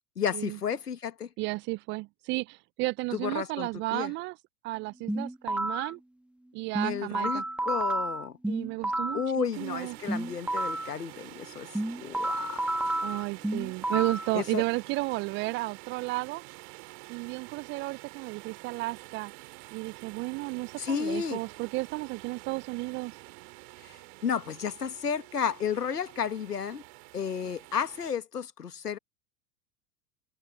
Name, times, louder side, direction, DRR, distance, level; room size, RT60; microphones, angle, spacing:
voice 1, 0.2-1.3 3.1-4.1 6.8-8.4 9.1-11.7 12.0-12.9 14.3-14.6 20.8-21.4 23.8-26.8 27.1-29.0, left 7 dB, 85° left, 1.4 m, -32 dB
voice 2, 1.4-4.4 4.6-6.0 6.5-7.4 8.5-10.0 13.0-16.4 17.1-19.3 19.7-23.1, right 24 dB, 25° right, 0.4 m, -33 dB
sound 1, 5.1-5.9 6.7-9.3 10.1-10.9 11.7-14.3, right 1 dB, 5° right, 1.1 m, -31 dB
sound 2, 9.5-28.1, right 38 dB, 50° right, 2.5 m, -48 dB
figure-of-eight pair, 85°, 45 cm